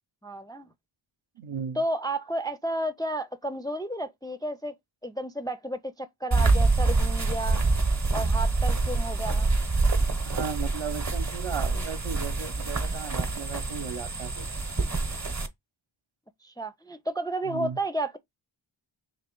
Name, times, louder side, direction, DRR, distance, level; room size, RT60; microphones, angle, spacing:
voice 1, 0.2-0.7 1.8-4.7 5.0-7.6 8.1-9.6 16.4-18.2, right 1 dB, 10° left, 0.3 m, -32 dB
voice 2, 1.4-1.8 10.2-14.5 17.5-17.8, right 7 dB, 65° right, 0.7 m, -36 dB
sound 1, 6.3-15.5, right 3 dB, 35° right, 0.9 m, -26 dB
3.1 x 3.0 x 4.4 m
wide cardioid pair, 50°, 50 cm